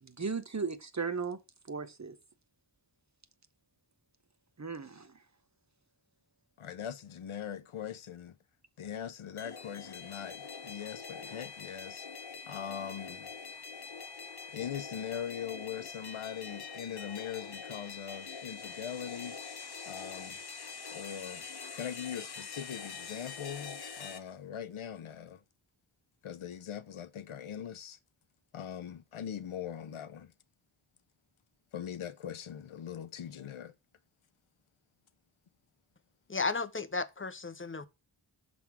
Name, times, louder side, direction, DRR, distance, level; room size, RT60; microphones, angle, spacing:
voice 1, 0.0-1.4 1.7-2.2 4.6-5.1, right 5 dB, 35° right, 0.7 m, -36 dB
voice 2, 6.6-8.3 8.8-12.1 12.5-13.3 14.5-19.4 19.9-20.4 20.9-21.4 21.7-25.4 26.2-28.0 28.5-30.3 31.7-33.7, left 9 dB, 85° left, 0.6 m, -41 dB
sound 1, 9.4-24.2, left 5 dB, 55° left, 0.8 m, -44 dB
voice 3, 36.3-37.9, left 4 dB, 25° left, 0.6 m, -34 dB
6.1 x 3.5 x 5.8 m
wide cardioid pair, 45°, 48 cm